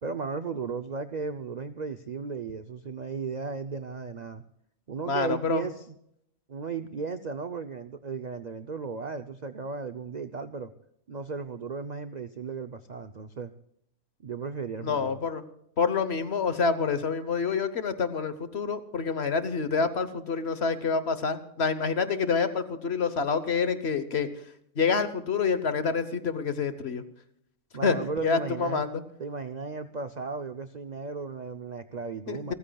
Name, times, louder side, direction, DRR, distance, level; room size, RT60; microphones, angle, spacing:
voice 1, 0.0-4.4 4.9-6.0 6.5-10.7 11.1-13.5 14.2-15.2 27.7-28.8 29.2-32.5, right 5 dB, 50° right, 9 dB, 0.5 m, -35 dB
voice 2, 5.1-5.6 14.8-15.4 15.8-24.3 24.8-27.0 27.8-28.0 28.2-29.0 32.3-32.5, left 5 dB, 50° left, 11 dB, 1.2 m, -27 dB
28.5 x 14.5 x 2.3 m, 0.73 s
omnidirectional pair, 1.6 m